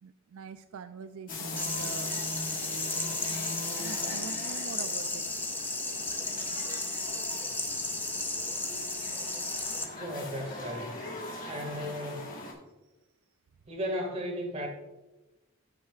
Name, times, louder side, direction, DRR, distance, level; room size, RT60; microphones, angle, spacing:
voice 1, 0.0-2.2 3.7-5.4, right 6 dB, 70° right, 10 dB, 0.4 m, -44 dB
sound 1, 1.3-12.5, left 2 dB, 40° left, 1.6 m, -41 dB
sound 2, 1.6-9.8, left 2 dB, 10° left, 0.7 m, -34 dB
voice 2, 9.9-11.0 11.4-12.3 13.7-14.7, equal, 30° right, 2 dB, 1.8 m, -35 dB
14.0 x 5.9 x 2.4 m, 1.0 s
head